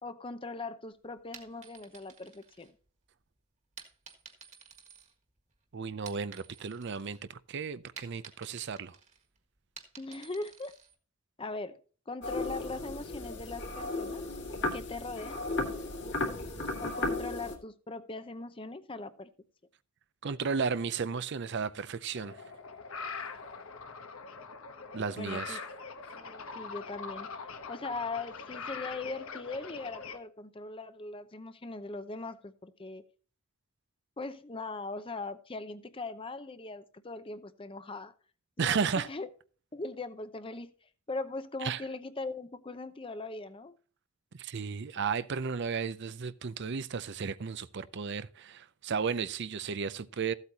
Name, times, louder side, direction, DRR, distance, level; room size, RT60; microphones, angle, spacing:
voice 1, 0.0-2.7 10.0-10.7 11.4-11.8 12.1-14.2 14.7-15.4 16.8-19.3 25.1-25.6 26.1-33.0 34.2-38.1 38.6-39.3 39.7-43.8, left 3 dB, 25° left, 0.7 m, -40 dB
sound 1, 1.2-3.1 3.8-5.5 5.9-7.2 7.5-10.9, right 6 dB, 35° right, 1.7 m, -53 dB
voice 2, 5.7-8.9 20.2-22.4 23.1-23.2 24.9-25.6 38.6-39.1 41.6-41.8 44.4-50.3, right 5 dB, 55° right, 0.5 m, -34 dB
sound 2, 12.2-17.6, left 2 dB, 55° left, 2.2 m, -35 dB
sound 3, 22.1-30.2, left 5 dB, 70° left, 1.1 m, -43 dB
14.5 x 8.2 x 2.8 m
head